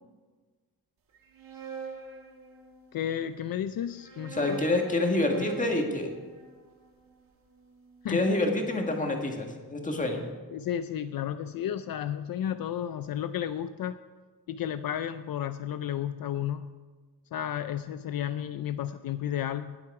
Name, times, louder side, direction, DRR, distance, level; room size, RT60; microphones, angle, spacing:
sound 1, 1.1-3.0 3.8-8.0, right 5 dB, 60° right, 1.9 m, -44 dB
voice 1, 2.9-4.6 8.0-8.3 10.5-14.0 14.5-16.7 17.3-19.8, left 10 dB, 65° left, 11 dB, 0.5 m, -32 dB
voice 2, 4.3-6.1 8.1-10.2, left 2 dB, 20° left, 2 dB, 1.7 m, -27 dB
19.5 x 7.8 x 4.8 m, 1.4 s
wide cardioid pair, 160°, 37 cm